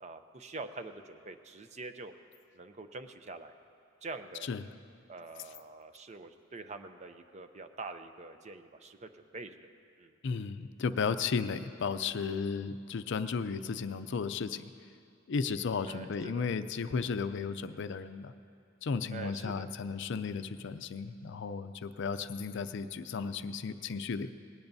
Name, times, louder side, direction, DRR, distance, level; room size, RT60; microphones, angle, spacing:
voice 1, 0.0-2.1 2.5-3.5 4.0-4.5 5.1-9.6 10.0-10.1 15.8-16.5 19.1-19.7, right 3 dB, 35° right, 8 dB, 0.6 m, -45 dB
voice 2, 10.2-14.7 15.3-18.3 18.8-24.3, left 5 dB, 60° left, 11 dB, 0.5 m, -34 dB
19.5 x 17.5 x 2.7 m, 2.4 s
head